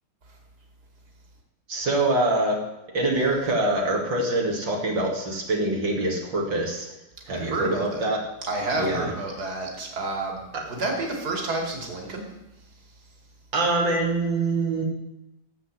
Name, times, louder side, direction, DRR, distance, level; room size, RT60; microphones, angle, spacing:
voice 1, 1.7-2.6 2.9-6.9 7.3-8.2 8.7-9.1 10.5-10.6 13.5-14.8, right 2 dB, 85° right, -2 dB, 3.1 m, -24 dB
voice 2, 7.3-8.0 8.5-10.4 10.7-12.3, right 2 dB, 60° right, 1 dB, 3.2 m, -29 dB
15.0 x 8.1 x 7.5 m, 0.98 s
omnidirectional pair, 2.0 m